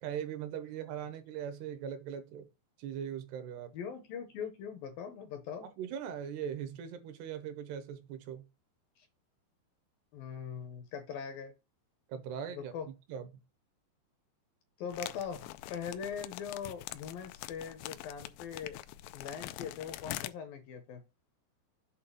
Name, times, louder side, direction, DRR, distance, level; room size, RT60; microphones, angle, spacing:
voice 1, 0.0-2.5 2.8-3.7 5.6-8.4 12.1-12.7 13.1-13.3, right 8 dB, 80° right, 2.9 m, -40 dB
voice 2, 3.7-5.7 9.0-9.1 10.1-11.5 12.5-12.9 14.8-18.8 19.1-21.0, left 7 dB, 75° left, 2.2 m, -41 dB
sound 1, 14.9-20.3, left 15 dB, 90° left, 2.8 m, -44 dB
8.2 x 3.3 x 5.4 m
omnidirectional pair, 4.9 m